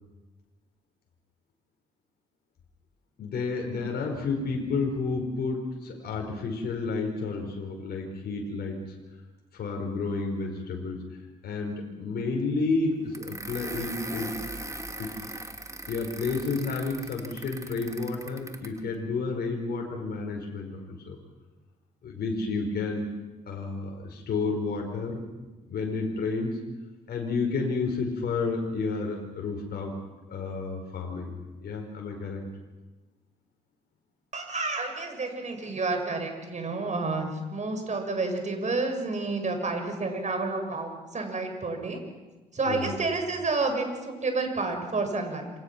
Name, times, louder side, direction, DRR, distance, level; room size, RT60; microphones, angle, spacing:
voice 1, 3.2-8.8 9.5-11.0 11.4-14.4 15.0-15.3 15.9-21.2 22.0-23.1 23.5-26.6 27.1-29.9 30.3-31.3 31.6-32.4 42.7-42.9, left 4 dB, 55° left, 1 dB, 5.1 m, -31 dB
sound 1, 13.1-18.8, right 2 dB, 15° right, 3.0 m, -40 dB
voice 2, 34.3-42.0 42.5-45.5, right 3 dB, 35° right, 5 dB, 6.6 m, -30 dB
28.0 x 24.0 x 6.1 m, 1.2 s
figure-of-eight pair, 40°, 20 cm